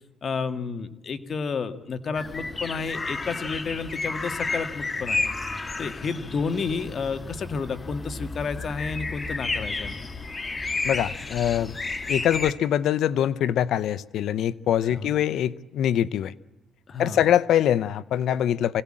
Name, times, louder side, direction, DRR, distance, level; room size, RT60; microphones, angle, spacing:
voice 1, 0.2-5.3 5.8-10.0 14.9-15.1 16.9-17.2, left 5 dB, 50° left, 9 dB, 1.8 m, -31 dB
sound 1, 2.2-12.5, left 3 dB, 30° left, 1.5 m, -32 dB
voice 2, 10.8-11.8 12.1-16.3 17.0-18.8, left 10 dB, 75° left, 17 dB, 0.7 m, -23 dB
26.0 x 17.0 x 8.8 m, 1.0 s
cardioid pair, 90°, 0 cm